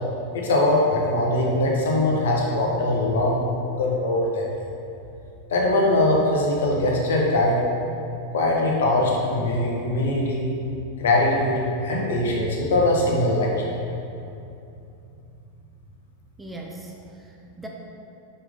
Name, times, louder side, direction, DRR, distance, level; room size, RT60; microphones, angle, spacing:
voice 1, 0.3-3.4 3.7-4.5 5.5-7.6 8.3-10.4 11.0-13.7, left 1 dB, 60° left, -2 dB, 1.2 m, -21 dB
voice 2, 16.4-17.7, right 2 dB, 5° right, -1 dB, 0.6 m, -40 dB
5.9 x 5.5 x 3.8 m, 2.7 s
figure-of-eight pair, 90°, 0 cm